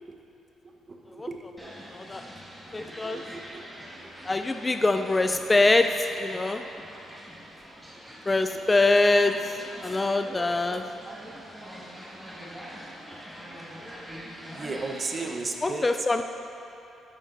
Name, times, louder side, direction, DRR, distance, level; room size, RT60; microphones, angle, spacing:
voice 1, 0.6-1.6 2.8-4.1 8.5-8.6 11.0-11.6 14.4-16.2, right 3 dB, 35° right, 2 dB, 1.0 m, -37 dB
sound 1, 1.6-15.3, equal, 5° right, 1.9 m, -44 dB
voice 2, 1.9-2.2 2.7-3.2 4.3-6.7 8.3-10.9 15.6-16.2, left 2 dB, 20° left, 7 dB, 0.4 m, -24 dB
12.5 x 10.5 x 2.7 m, 2.8 s
cardioid pair, 90°, 0 cm